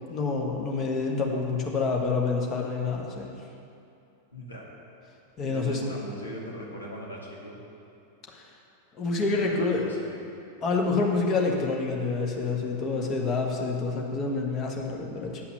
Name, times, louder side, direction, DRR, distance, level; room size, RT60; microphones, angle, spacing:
voice 1, 0.1-3.3 5.4-5.8 8.3-8.5 9.0-9.9 10.6-15.4, left 3 dB, 30° left, 0 dB, 1.4 m, -27 dB
voice 2, 4.3-4.7 5.4-7.6 9.3-10.3, equal, 80° left, -4 dB, 2.0 m, -40 dB
10.0 x 5.7 x 6.6 m, 2.6 s
figure-of-eight pair, 90°, 0 cm